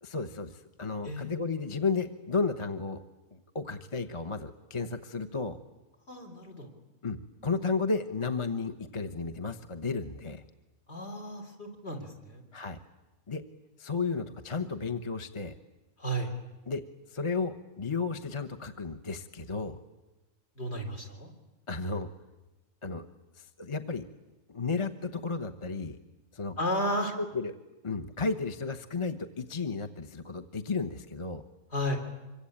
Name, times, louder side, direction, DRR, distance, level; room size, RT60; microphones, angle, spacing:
voice 1, 0.0-3.0 3.3-5.6 7.0-10.4 12.5-12.8 13.3-13.4 13.8-15.5 16.7-16.8 17.1-19.8 21.7-22.1 22.8-23.1 23.3-24.0 24.5-26.0 26.3-26.5 27.2-27.5 27.8-31.4, left 4 dB, 25° left, 6 dB, 1.0 m, -33 dB
voice 2, 1.0-1.4 6.1-6.7 10.9-12.4 16.0-16.3 20.6-21.3 26.6-27.2 31.7-32.0, equal, 55° left, 1 dB, 4.1 m, -33 dB
25.5 x 24.0 x 8.8 m, 1.1 s
omnidirectional pair, 1.3 m